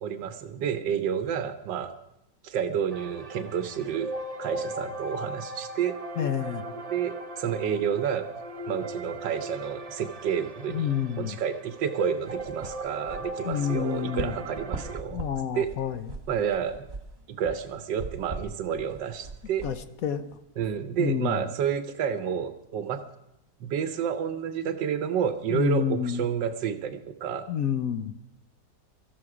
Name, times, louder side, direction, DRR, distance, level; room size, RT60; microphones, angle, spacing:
voice 1, 0.0-2.0 2.4-4.1 4.4-6.0 6.9-8.3 8.7-10.9 11.1-15.3 15.5-15.7 16.3-16.8 17.3-19.6 20.6-23.0 23.6-27.5, right 8 dB, 90° right, 9 dB, 1.5 m, -30 dB
sound 1, 2.9-15.0, right 1 dB, 60° right, 0.4 m, -38 dB
voice 2, 6.2-6.6 10.7-11.4 13.4-14.3 15.1-16.1 19.6-19.8 20.0-20.2 21.0-21.4 25.5-26.3 27.5-28.1, left 9 dB, 60° left, 10 dB, 1.0 m, -28 dB
sound 2, 12.3-20.8, right 3 dB, 30° right, 1.3 m, -41 dB
17.5 x 14.0 x 4.9 m, 0.84 s
omnidirectional pair, 1.9 m